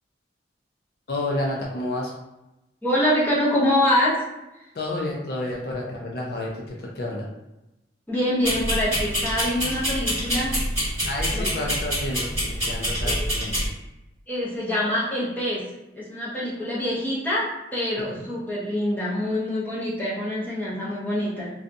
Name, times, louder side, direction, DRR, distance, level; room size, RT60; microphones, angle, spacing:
voice 1, 1.1-2.1 4.7-7.3 11.1-13.6, left 1 dB, 55° left, -2 dB, 0.4 m, -30 dB
voice 2, 2.8-4.2 8.1-10.6 11.3-11.5 13.0-13.3 14.3-15.7 16.0-21.5, left 1 dB, 10° left, -8 dB, 0.7 m, -25 dB
sound 1, 8.4-13.7, equal, 15° right, 1.4 m, -26 dB
2.6 x 2.3 x 2.6 m, 0.95 s
head